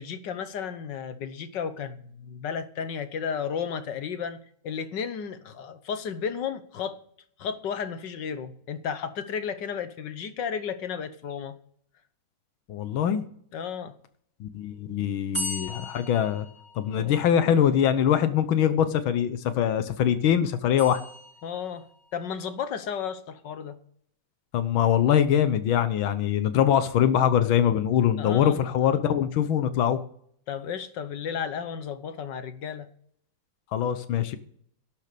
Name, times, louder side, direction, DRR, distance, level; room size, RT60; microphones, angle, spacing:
voice 1, 0.0-4.4 4.6-7.0 7.4-11.6 13.5-14.0 17.0-17.1 21.4-21.9 22.1-23.8 28.2-28.6 30.5-32.9, left 7 dB, 65° left, 11 dB, 1.6 m, -33 dB
voice 2, 12.7-13.2 14.4-16.5 16.8-21.0 24.5-30.0 33.7-34.4, left 9 dB, 85° left, 11 dB, 1.7 m, -23 dB
sound 1, 15.3-17.3 20.8-21.8, left 1 dB, 15° left, 5.6 m, -37 dB
12.0 x 9.3 x 6.7 m, 0.63 s
omnidirectional pair, 2.1 m